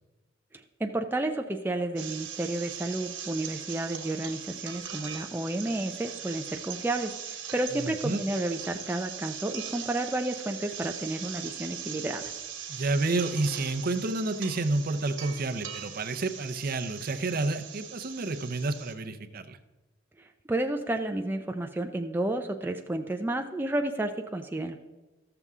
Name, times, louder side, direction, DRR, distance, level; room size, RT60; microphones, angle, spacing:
voice 1, 0.5-12.3 20.2-24.8, right 2 dB, 10° right, 4 dB, 0.4 m, -31 dB
sound 1, 2.0-18.9, right 8 dB, 90° right, 1.3 m, -40 dB
voice 2, 7.7-8.2 12.7-19.6, right 2 dB, 50° right, 7 dB, 0.6 m, -30 dB
13.5 x 6.9 x 3.6 m, 1.2 s
head